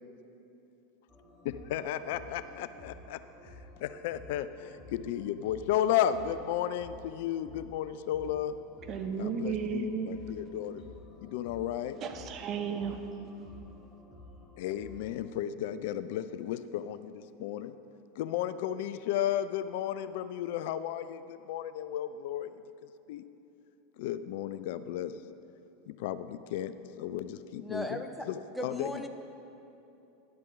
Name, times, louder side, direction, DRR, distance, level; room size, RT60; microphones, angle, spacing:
sound 1, 1.1-15.1, left 1 dB, 15° left, 1.6 m, -52 dB
voice 1, 1.5-3.5 3.8-8.6 9.2-10.9 11.2-12.0 14.6-17.8 18.2-22.5 22.8-23.2 24.0-25.1 25.9-29.1, left 11 dB, 60° left, 13 dB, 0.3 m, -34 dB
voice 2, 8.9-10.1 12.0-13.1, right 6 dB, 40° right, 6 dB, 0.9 m, -34 dB
voice 3, 27.6-28.3 28.6-29.1, equal, ahead, 5 dB, 0.7 m, -37 dB
10.5 x 6.1 x 5.7 m, 2.8 s
hypercardioid pair, 85°, 0 cm